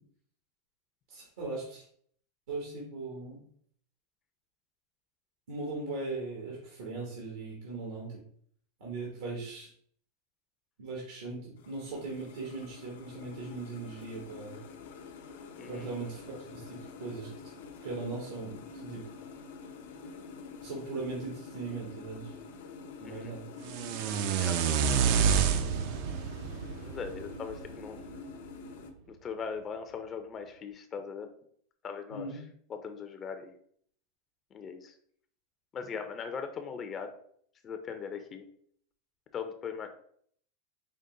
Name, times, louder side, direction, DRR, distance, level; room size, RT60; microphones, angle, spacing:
voice 1, 1.1-1.9 2.5-3.4 5.5-8.2 8.8-9.7 10.8-14.6 15.7-17.3 17.8-19.0 20.6-22.3 23.0-23.4 25.4-25.9 32.1-32.4, right 3 dB, 80° right, -3 dB, 1.3 m, -39 dB
sound 1, 11.6-28.9, left 4 dB, 85° left, 0.6 m, -47 dB
voice 2, 15.6-15.9 23.0-23.3 24.3-24.8 26.8-28.0 29.1-31.3 31.8-32.4 32.7-33.5 34.5-34.9 35.7-37.1 37.6-38.4 39.3-39.9, left 6 dB, 30° left, 7 dB, 0.5 m, -40 dB
sound 2, 23.6-27.8, right 7 dB, 60° right, 0.4 m, -28 dB
5.2 x 2.1 x 3.7 m, 0.62 s
supercardioid pair, 125°, 0 cm